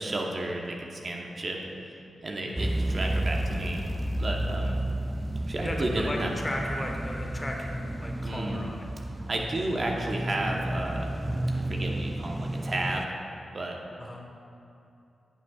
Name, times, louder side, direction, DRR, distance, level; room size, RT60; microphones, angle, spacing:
voice 1, 0.0-1.6 2.2-3.9 4.2-4.8 5.5-6.3 8.2-8.6 9.3-11.1 11.5-13.1 13.5-13.8, right 2 dB, 50° right, 0 dB, 1.0 m, -32 dB
sound 1, 2.6-13.1, right 1 dB, 20° right, 0.4 m, -32 dB
voice 2, 5.6-8.9 9.2-9.3 14.0-14.3, left 1 dB, 25° left, 1 dB, 1.2 m, -36 dB
11.0 x 7.2 x 2.4 m, 2.7 s
supercardioid pair, 45°, 0 cm